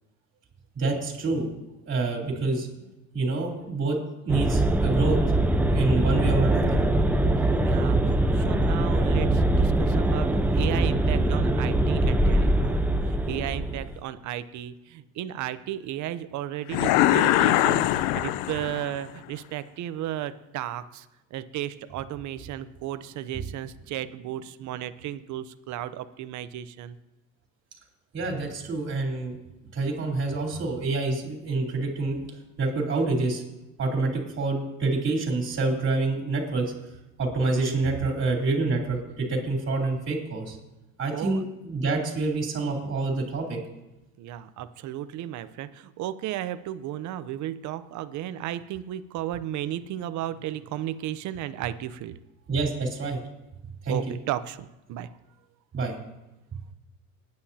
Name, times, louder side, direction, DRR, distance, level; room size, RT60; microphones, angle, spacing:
voice 1, 0.8-1.5 1.9-2.7 3.1-4.0 4.2-5.2 5.7-6.8 28.1-29.4 29.7-32.2 32.6-33.4 33.8-36.7 37.2-40.6 41.0-43.6 52.5-53.2 53.8-54.2 55.7-55.9, right 3 dB, 30° right, -1 dB, 3.7 m, -27 dB
sound 1, 4.3-13.9, right 1 dB, 5° right, 0.6 m, -23 dB
voice 2, 7.6-21.1 21.3-27.0 41.1-41.4 44.2-52.1 53.9-55.1, right 12 dB, 45° right, 13 dB, 0.8 m, -34 dB
sound 2, 16.7-19.0, left 14 dB, 60° left, 0.6 m, -22 dB
19.5 x 9.7 x 2.9 m, 0.96 s
supercardioid pair, 110°, 40 cm